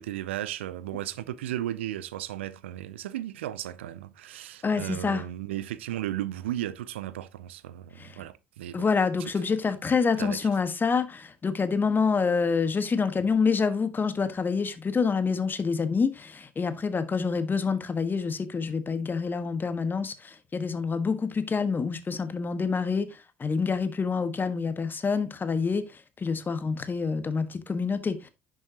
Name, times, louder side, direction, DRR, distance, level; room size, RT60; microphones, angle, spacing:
voice 1, 0.0-8.9 9.2-9.3 10.2-10.4, right 13 dB, 85° right, 0.5 m, -35 dB
voice 2, 4.6-5.2 8.0-8.2 8.7-28.3, left 5 dB, 30° left, 1.4 m, -27 dB
11.0 x 6.3 x 2.9 m
hypercardioid pair, 55°, 6 cm